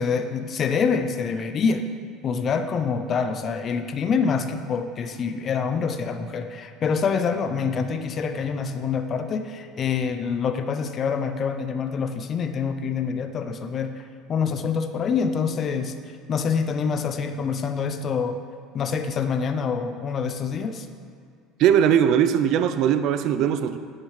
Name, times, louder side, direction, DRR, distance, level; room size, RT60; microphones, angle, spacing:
voice 1, 0.0-1.9 2.2-15.9 16.3-18.4 18.7-20.9, left 5 dB, 35° left, 8 dB, 0.7 m, -26 dB
voice 2, 21.6-23.8, right 9 dB, 55° right, 10 dB, 0.6 m, -20 dB
9.3 x 6.6 x 6.5 m, 2.3 s
supercardioid pair, 120°, 0 cm